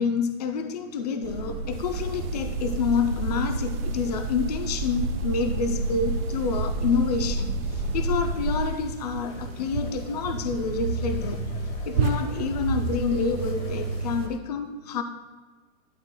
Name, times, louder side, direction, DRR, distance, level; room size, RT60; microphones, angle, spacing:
voice 1, 0.0-11.4 11.9-15.0, left 5 dB, 30° left, 7 dB, 0.4 m, -28 dB
sound 1, 1.2-8.7, right 2 dB, 80° right, 2.2 m, -30 dB
sound 2, 1.7-14.3, right 4 dB, 45° right, 0.5 m, -33 dB
sound 3, 9.3-14.4, left 6 dB, 60° left, 1.1 m, -47 dB
12.0 x 6.1 x 2.2 m, 1.4 s
hypercardioid pair, 155°, 42 cm